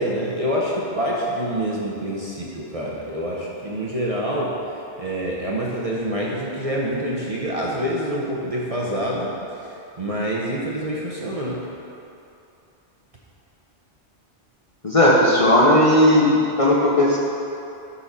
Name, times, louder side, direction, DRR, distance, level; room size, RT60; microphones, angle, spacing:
voice 1, 0.0-4.5 5.0-9.3 9.6-9.7 10.0-11.6, equal, 35° right, -5 dB, 0.8 m, -26 dB
voice 2, 14.8-16.3 16.6-17.2, left 1 dB, 30° left, -5 dB, 0.9 m, -15 dB
11.0 x 4.2 x 4.1 m, 2.7 s
omnidirectional pair, 1.2 m